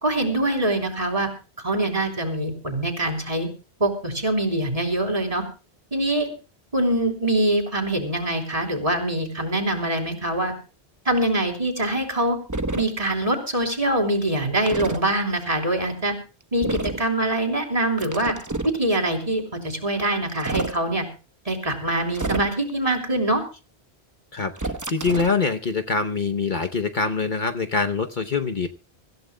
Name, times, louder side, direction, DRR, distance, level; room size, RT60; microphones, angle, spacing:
voice 1, 0.0-1.3 1.6-3.5 3.8-5.4 5.9-6.3 6.7-10.5 11.1-12.4 12.7-16.1 16.5-18.3 18.8-21.0 21.5-23.4, right 1 dB, 35° right, 4 dB, 3.6 m, -24 dB
sound 1, 12.5-12.9 14.7-15.0 16.6-17.0 18.0-18.8 20.3-20.8 22.1-22.7 24.6-25.4, right 2 dB, 20° right, 0.9 m, -29 dB
voice 2, 24.3-28.7, left 4 dB, 50° left, 6 dB, 1.0 m, -24 dB
25.0 x 15.0 x 2.2 m, 0.33 s
omnidirectional pair, 1.1 m